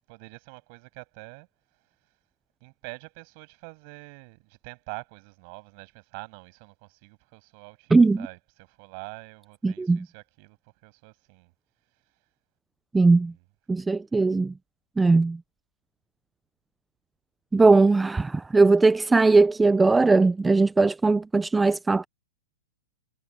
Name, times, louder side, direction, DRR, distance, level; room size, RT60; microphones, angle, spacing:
voice 1, 0.1-1.5 2.6-10.6 10.8-11.5 13.0-13.3, right 34 dB, 35° right, 7.7 m, -45 dB
voice 2, 7.9-8.3 9.6-10.0 12.9-13.3 13.7-14.5 15.0-15.4 17.5-22.1, right 3 dB, 5° right, 0.3 m, -19 dB
hypercardioid pair, 160°, 0 cm